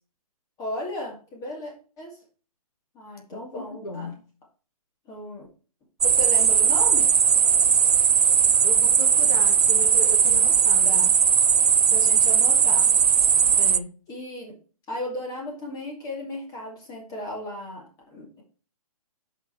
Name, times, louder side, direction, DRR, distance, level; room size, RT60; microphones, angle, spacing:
voice 1, 0.6-2.2 2.9-4.1 5.1-5.5 6.0-7.1 10.8-11.1 11.9-12.9 14.1-14.5 14.9-18.4, left 1 dB, 20° left, 2.4 m, -35 dB
voice 2, 3.3-4.3 8.6-11.2 13.6-14.0, left 2 dB, 85° left, 1.8 m, -37 dB
sound 1, 6.0-13.8, right 7 dB, 85° right, 0.5 m, -19 dB
8.4 x 5.4 x 4.4 m
hypercardioid pair, 135°, 19 cm